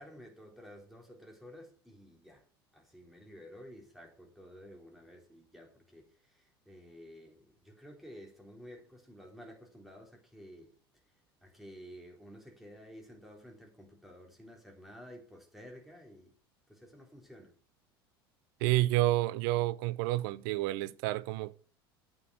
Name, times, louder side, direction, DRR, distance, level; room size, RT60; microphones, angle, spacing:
voice 1, 0.0-2.4 2.7-10.7 11.1-16.3 16.7-17.5, equal, ahead, 3.8 m, -52 dB
voice 2, 18.6-21.5, right 17 dB, 60° right, 0.6 m, -29 dB
8.4 x 7.7 x 6.1 m
hypercardioid pair, 80°, 13 cm